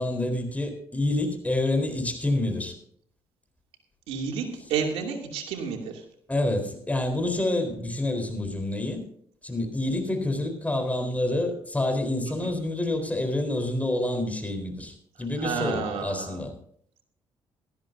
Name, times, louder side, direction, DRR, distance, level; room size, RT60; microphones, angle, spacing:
voice 1, 0.0-2.7 6.3-9.0 9.4-16.5, left 1 dB, 15° left, 5 dB, 4.0 m, -28 dB
voice 2, 4.1-5.9 12.3-12.5 15.4-16.4, right 6 dB, 85° right, 2 dB, 2.7 m, -31 dB
17.5 x 13.5 x 2.7 m, 0.64 s
cardioid pair, 75°, 10 cm